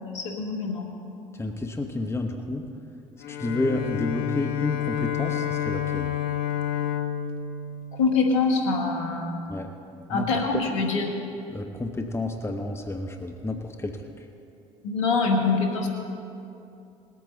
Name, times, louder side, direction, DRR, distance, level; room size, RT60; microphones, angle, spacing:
voice 1, 0.1-0.8 7.9-9.4 10.1-11.1 14.8-15.9, left 4 dB, 85° left, 2 dB, 1.8 m, -24 dB
voice 2, 1.4-2.6 3.3-6.1 9.5-9.7 10.1-10.3 10.5-10.6 11.5-14.0, left 2 dB, 15° left, 4 dB, 1.1 m, -30 dB
Bowed string instrument, 3.2-8.7, left 10 dB, 65° left, 1.0 m, -30 dB
20.0 x 8.7 x 4.0 m, 2.6 s
hypercardioid pair, 60°, 16 cm